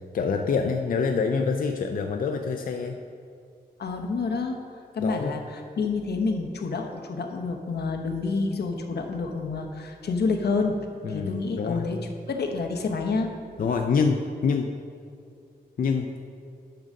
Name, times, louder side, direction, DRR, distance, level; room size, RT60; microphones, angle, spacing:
voice 1, 0.1-3.0 5.0-5.4 11.0-11.9 13.6-14.7 15.8-16.2, left 5 dB, 60° left, 5 dB, 0.4 m, -26 dB
voice 2, 3.8-10.8 11.1-12.0 12.3-13.3, left 4 dB, 85° left, 3 dB, 0.9 m, -28 dB
10.0 x 3.8 x 6.4 m, 2.5 s
wide cardioid pair, 145°, 16 cm